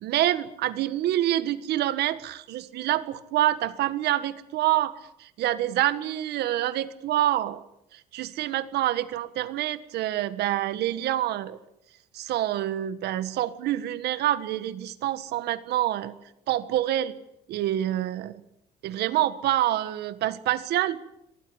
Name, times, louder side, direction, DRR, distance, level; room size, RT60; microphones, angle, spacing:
voice 1, 0.0-4.9 5.2-7.6 7.9-11.6 12.1-16.1 16.5-17.1 17.5-18.3 18.8-21.0, right 13 dB, 75° right, 13 dB, 1.6 m, -27 dB
24.5 x 19.0 x 8.1 m, 0.83 s
cardioid pair, 110°, 17 cm